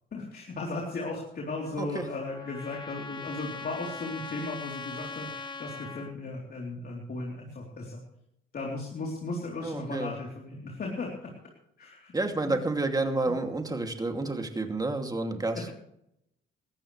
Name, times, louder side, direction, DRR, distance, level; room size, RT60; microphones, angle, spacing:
voice 1, 0.1-8.0 8.5-11.3 11.8-12.6 13.3-13.4 15.5-15.7, left 2 dB, 50° left, -2 dB, 3.8 m, -36 dB
Trumpet, 1.6-6.1, left 3 dB, 25° left, 1.6 m, -41 dB
voice 2, 1.8-2.1 9.6-10.1 12.1-15.7, right 2 dB, 20° right, 4 dB, 2.7 m, -30 dB
19.5 x 15.0 x 3.4 m, 0.77 s
cardioid pair, 90°, 20 cm